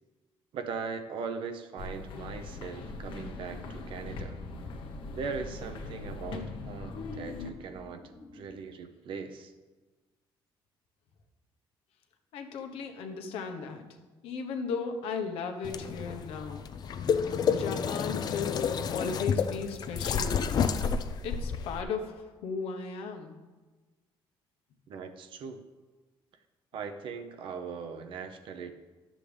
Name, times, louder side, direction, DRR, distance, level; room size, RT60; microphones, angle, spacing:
voice 1, 0.5-4.4 5.1-8.0 8.3-9.5 24.9-25.6 26.7-28.7, right 5 dB, 65° right, 7 dB, 0.8 m, -39 dB
sound 1, 1.8-7.5, left 3 dB, 60° left, 1.0 m, -41 dB
sound 2, 2.3-8.6, left 1 dB, 10° left, 0.7 m, -51 dB
voice 2, 12.3-13.9 14.2-16.6 17.5-20.7 21.2-23.4, left 5 dB, 85° left, 5 dB, 1.0 m, -36 dB
sound 3, 15.6-21.8, left 6 dB, 45° left, 0.5 m, -30 dB
11.5 x 7.5 x 3.4 m, 1.3 s
cardioid pair, 135°, 9 cm